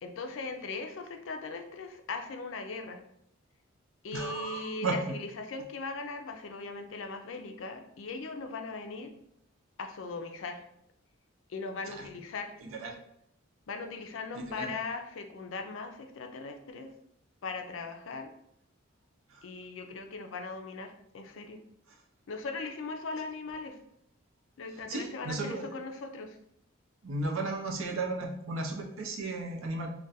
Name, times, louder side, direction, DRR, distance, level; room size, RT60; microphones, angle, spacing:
voice 1, 0.0-3.0 4.0-9.1 9.8-10.6 11.5-12.5 13.7-16.9 17.4-18.3 19.4-21.6 22.3-23.8 24.6-26.4, left 4 dB, 65° left, 5 dB, 0.4 m, -39 dB
voice 2, 4.1-5.0 11.9-12.0 12.6-12.9 14.4-14.7 24.9-25.7 27.0-29.9, right 3 dB, 70° right, 1 dB, 0.6 m, -34 dB
2.4 x 2.2 x 4.0 m, 0.74 s
head